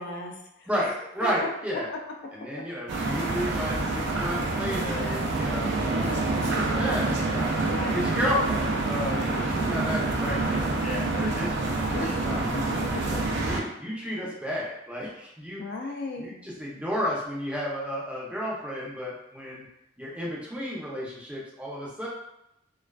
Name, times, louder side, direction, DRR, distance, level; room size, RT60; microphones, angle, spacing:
voice 1, 0.0-0.9 1.2-1.3 7.6-8.2 11.9-12.1 12.5-12.6 12.9-13.0 15.6-16.3, left 3 dB, 55° left, 1 dB, 0.3 m, -35 dB
voice 2, 0.7-1.9 2.3-7.5 7.9-12.5 13.1-15.6 16.2-19.7 20.0-22.1, equal, 5° right, -5 dB, 0.5 m, -32 dB
sound 1, 2.9-13.6, right 2 dB, 60° right, 0.4 m, -27 dB
2.4 x 2.3 x 2.2 m, 0.82 s
head